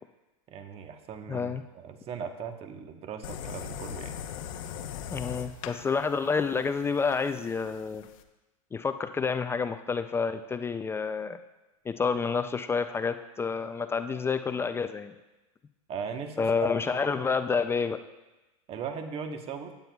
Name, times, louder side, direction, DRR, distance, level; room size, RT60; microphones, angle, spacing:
voice 1, 0.5-4.2 15.9-16.7 17.0-17.2 18.7-19.7, right 6 dB, 35° right, 6 dB, 1.1 m, -38 dB
voice 2, 1.3-1.6 5.1-8.0 8.7-11.4 11.9-15.1 16.4-18.0, left 5 dB, 15° left, 9 dB, 0.4 m, -29 dB
sound 1, 3.2-8.2, left 8 dB, 65° left, 0.9 m, -40 dB
16.0 x 9.0 x 2.3 m, 1.1 s
hypercardioid pair, 115°, 18 cm